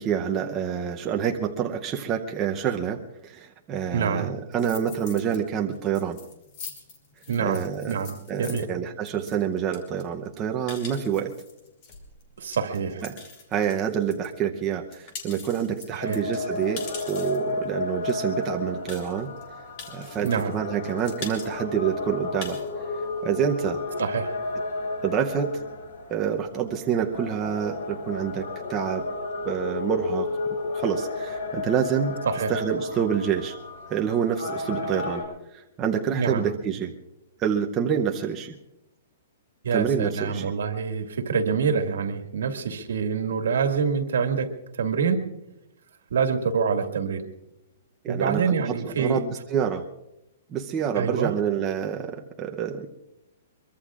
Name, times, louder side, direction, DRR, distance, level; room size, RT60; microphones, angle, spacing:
voice 1, 0.0-6.2 7.4-8.0 8.3-11.3 13.0-13.2 13.5-19.3 19.9-22.6 23.2-23.8 25.0-25.5 26.1-29.1 29.4-30.3 30.7-32.2 32.5-33.5 33.9-35.3 35.5-36.9 37.4-38.6 39.7-40.5 48.0-49.8 50.5-52.9, right 8 dB, 15° right, 2 dB, 0.7 m, -27 dB
voice 2, 3.9-4.3 7.3-8.6 12.4-13.0 15.9-16.2 20.2-20.5 24.0-24.4 32.3-32.5 36.1-36.4 39.6-44.5 44.7-45.2 46.1-47.2 48.1-49.2 50.9-51.3, right 6 dB, 80° right, 6 dB, 1.9 m, -26 dB
sound 1, 4.5-5.4 5.7-14.3 14.7-17.5 18.1-18.2 18.4-18.5 18.9-19.4 19.8-20.6 20.8-21.5 21.8-21.9 22.2-22.7, left 4 dB, 30° left, 2.6 m, -42 dB
sound 2, 16.0-35.2, left 3 dB, 80° left, 6.1 m, -32 dB
23.5 x 22.5 x 2.5 m, 0.89 s
hypercardioid pair, 175°, 0 cm